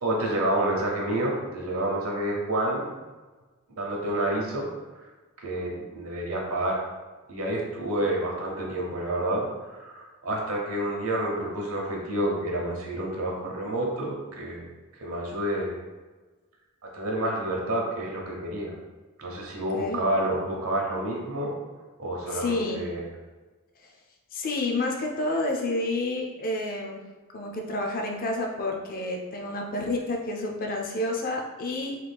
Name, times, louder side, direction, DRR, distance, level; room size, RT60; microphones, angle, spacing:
voice 1, 0.0-2.9 3.7-4.7 4.9-5.1 5.4-6.8 7.3-14.7 15.0-15.8 16.8-18.7 19.2-21.5 22.0-23.1, right 1 dB, 70° right, -1 dB, 0.8 m, -29 dB
voice 2, 22.3-22.9 24.3-27.0 27.3-32.0, left 2 dB, 40° left, 1 dB, 0.4 m, -29 dB
3.1 x 2.3 x 3.3 m, 1.3 s
head